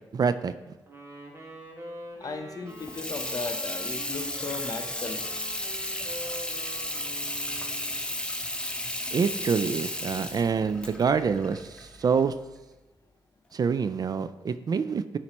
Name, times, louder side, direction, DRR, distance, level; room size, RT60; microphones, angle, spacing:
voice 1, 0.1-0.5 9.1-12.3 13.5-15.2, right 6 dB, 45° right, 13 dB, 0.4 m, -26 dB
Wind instrument woodwind instrument, 0.9-8.1, right 1 dB, 30° right, 1.7 m, -45 dB
voice 2, 2.2-5.3, left 3 dB, 40° left, 7 dB, 0.8 m, -36 dB
Water tap faucet / Sink (filling or washing), 2.7-12.3, left 1 dB, 10° left, 0.7 m, -34 dB
9.4 x 4.2 x 3.0 m, 1.1 s
cardioid pair, 60°, 9 cm